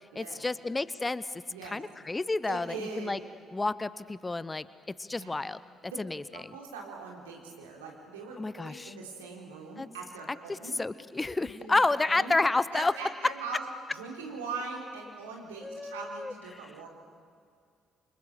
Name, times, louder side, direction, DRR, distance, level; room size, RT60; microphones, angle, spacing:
voice 1, 0.1-3.2 3.5-4.7 5.0-5.6 6.0-6.5 8.4-8.9 9.8-9.9 10.5-12.9 15.6-16.3, left 3 dB, 20° left, 17 dB, 0.8 m, -30 dB
voice 2, 1.5-1.8 2.5-3.1 5.1-5.3 5.9-6.0 6.3-10.8 11.3-12.4 12.7-13.6 13.9-16.9, right 4 dB, 80° right, 0 dB, 3.7 m, -41 dB
28.5 x 25.5 x 6.8 m, 2.3 s
figure-of-eight pair, 45°, 0 cm